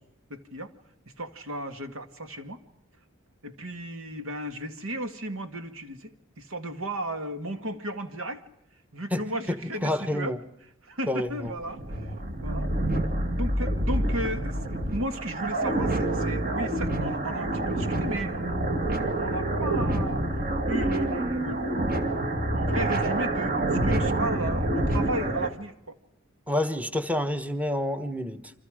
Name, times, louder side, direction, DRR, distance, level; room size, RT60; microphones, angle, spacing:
voice 1, 0.3-0.7 1.2-2.6 3.4-8.4 8.9-10.3 10.8-12.1 12.4-12.7 13.3-18.9 19.2-20.3 20.7-21.9 22.2-26.0, right 1 dB, 85° right, 8 dB, 1.9 m, -35 dB
voice 2, 9.8-10.4 11.1-11.5 26.5-28.5, left 1 dB, 5° right, 9 dB, 1.2 m, -28 dB
sound 1, 11.3-25.5, right 1 dB, 45° right, 2.3 m, -27 dB
29.0 x 25.5 x 5.0 m, 0.80 s
head